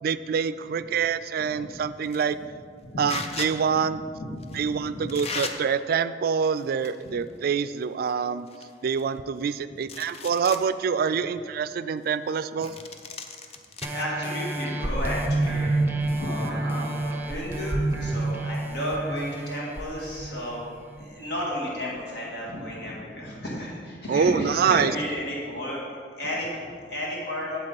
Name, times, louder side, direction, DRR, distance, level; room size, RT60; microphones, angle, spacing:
voice 1, 0.0-2.4 3.0-4.0 4.5-8.5 8.8-12.7 24.1-24.9, right 6 dB, 60° right, 14 dB, 0.3 m, -26 dB
sound 1, 2.0-2.3 3.1-3.5 4.4-4.6 5.1-5.5 6.5-7.1 7.4-7.5 8.1-8.2 8.5-9.5 9.8-10.6 11.1-11.2 12.6-13.9, left 4 dB, 35° left, 0.6 m, -36 dB
voice 2, 3.7-5.1 7.0-7.1 9.7-9.8 13.9-20.6 21.0-25.8 26.1-27.6, equal, 70° left, -4 dB, 1.8 m, -33 dB
sound 2, 13.8-21.0 21.5-21.6, right 2 dB, 10° right, 0.7 m, -29 dB
8.8 x 7.8 x 4.0 m, 2.1 s
head